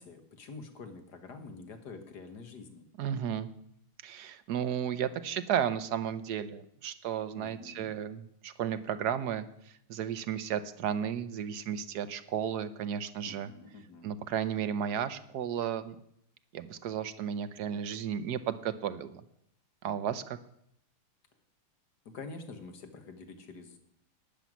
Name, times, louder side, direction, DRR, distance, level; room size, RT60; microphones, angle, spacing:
voice 1, 0.0-2.8 7.4-7.9 13.2-14.1 22.1-23.8, left 4 dB, 55° left, 7 dB, 1.8 m, -47 dB
voice 2, 3.0-3.5 4.0-13.5 14.0-16.0 16.5-19.2 19.8-20.4, right 9 dB, 60° right, 12 dB, 1.1 m, -33 dB
12.5 x 5.7 x 9.2 m, 0.71 s
omnidirectional pair, 2.4 m